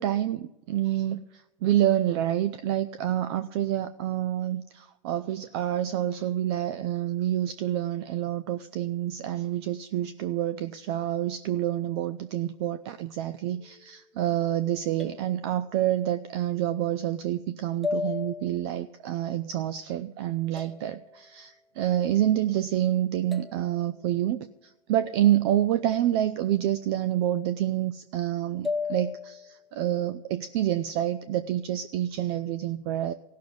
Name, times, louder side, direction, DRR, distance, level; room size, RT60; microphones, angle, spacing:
voice 1, 0.0-33.1, right 12 dB, 45° right, 12 dB, 0.6 m, -28 dB
sound 1, 13.6-14.1 15.0-16.3 17.8-18.9 20.6-21.6 23.3-24.4 25.9-26.8 28.6-29.7, left 5 dB, ahead, 0.8 m, -37 dB
16.0 x 6.6 x 9.5 m, 0.91 s
hypercardioid pair, 135°, 18 cm